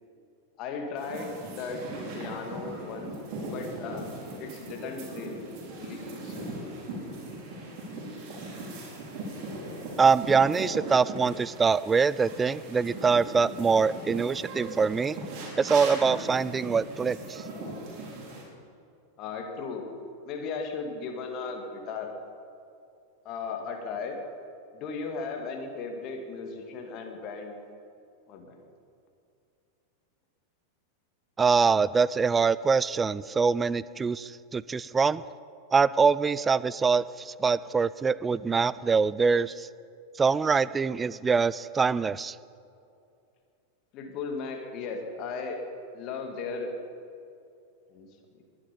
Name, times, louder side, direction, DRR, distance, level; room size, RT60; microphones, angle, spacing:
voice 1, 0.6-1.9 2.1-5.3 5.8-6.5 19.2-19.9 20.2-22.1 23.2-24.2 24.7-27.6 28.3-28.6 43.9-45.6 45.9-46.7 47.9-48.1, left 4 dB, 40° left, 4 dB, 2.2 m, -36 dB
sound 1, 1.0-18.4, right 2 dB, 40° right, 4.8 m, -39 dB
voice 2, 10.0-15.2 15.6-17.4 31.4-35.2 35.7-39.7 40.2-42.4, right 5 dB, 15° right, 19 dB, 0.4 m, -24 dB
21.5 x 11.0 x 5.3 m, 2.5 s
figure-of-eight pair, 90°, 0 cm